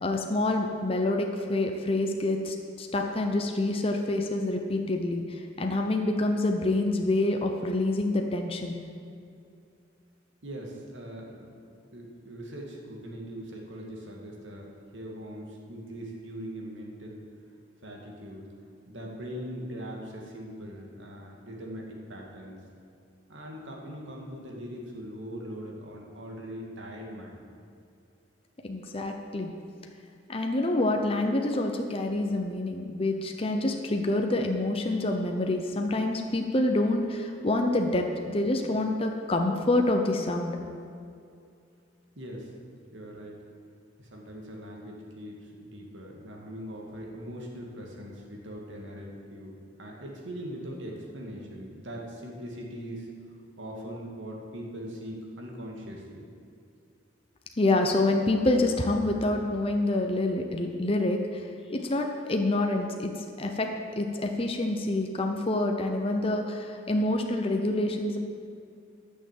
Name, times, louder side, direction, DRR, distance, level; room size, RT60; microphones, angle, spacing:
voice 1, 0.0-8.7 28.6-29.5 30.3-40.6 57.6-63.7 63.9-68.2, left 2 dB, 30° left, 3 dB, 0.8 m, -27 dB
voice 2, 10.4-11.5 11.9-14.7 14.9-17.2 17.8-18.5 18.9-22.6 23.3-27.4 42.2-42.5 42.9-43.4 44.0-56.2, equal, 75° right, -1 dB, 2.2 m, -41 dB
12.5 x 6.6 x 7.5 m, 2.4 s
head